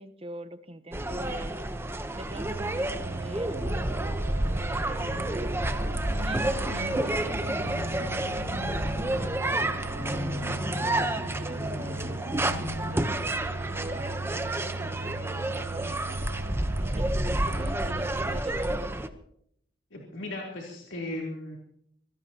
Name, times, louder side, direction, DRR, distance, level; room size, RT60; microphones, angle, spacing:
voice 1, 0.0-1.6 2.1-5.5 6.2-8.2 8.5-16.2 16.8-19.0, right 1 dB, 30° right, 10 dB, 1.1 m, -43 dB
sound 1, 0.9-19.1, right 1 dB, 15° right, 1.0 m, -30 dB
sound 2, 2.3-18.4, right 3 dB, 85° right, 0.8 m, -38 dB
sound 3, 6.1-12.9, left 2 dB, 45° left, 3.6 m, -39 dB
voice 2, 19.9-21.6, left 1 dB, 80° left, -3 dB, 3.7 m, -36 dB
25.0 x 19.0 x 3.0 m, 0.70 s
head